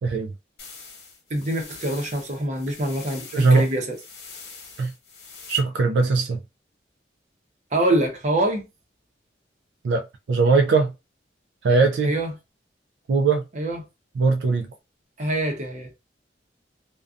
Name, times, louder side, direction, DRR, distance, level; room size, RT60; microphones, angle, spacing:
voice 1, 0.0-0.3 3.3-3.7 4.8-4.9 5.5-6.4 9.8-10.9 11.6-12.1 13.1-13.4 14.2-14.7, right 4 dB, 80° right, 0.4 m, -20 dB
sound 1, 0.6-5.6, left 4 dB, 80° left, 1.0 m, -43 dB
voice 2, 1.3-3.9 7.7-8.6 12.0-12.3 13.5-13.8 15.2-15.9, right 1 dB, 40° right, 0.7 m, -25 dB
2.5 x 2.2 x 2.4 m
head